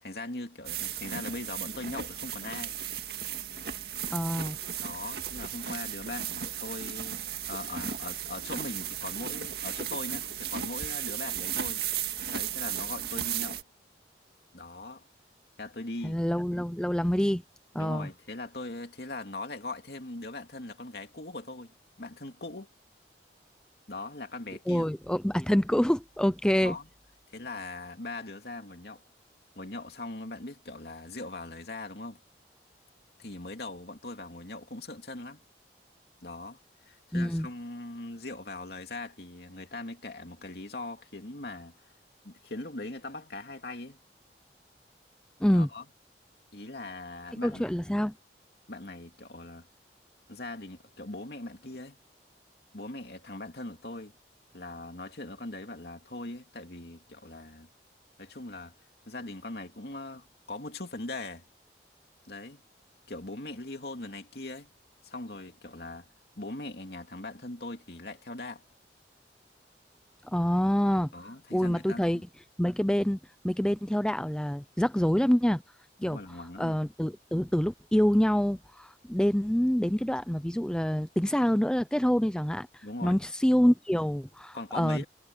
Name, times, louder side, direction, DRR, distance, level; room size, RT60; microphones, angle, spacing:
voice 1, 0.0-2.8 4.8-7.2 7.5-11.8 12.3-13.6 14.5-15.1 15.6-16.2 17.8-22.7 23.9-24.9 26.6-26.9 27.3-29.0 29.6-32.2 33.2-35.4 36.2-41.7 42.2-44.0 45.5-45.8 46.5-47.9 48.7-49.7 50.3-52.0 52.7-54.1 54.5-57.7 58.2-58.7 59.1-61.4 62.2-62.6 63.1-64.7 65.0-66.1 66.4-68.6 71.1-72.2 76.0-76.8 82.8-83.2 84.5-85.0, left 2 dB, 65° left, 2.8 m, -40 dB
sound 1, 0.6-13.6, right 9 dB, 65° right, 2.0 m, -35 dB
voice 2, 4.1-4.6 16.0-17.4 17.7-18.1 24.7-26.8 37.1-37.5 45.4-45.7 47.4-48.1 70.3-71.1 71.5-72.2 72.6-73.2 73.4-75.6 76.0-76.2 76.6-85.0, equal, 5° left, 0.5 m, -26 dB
head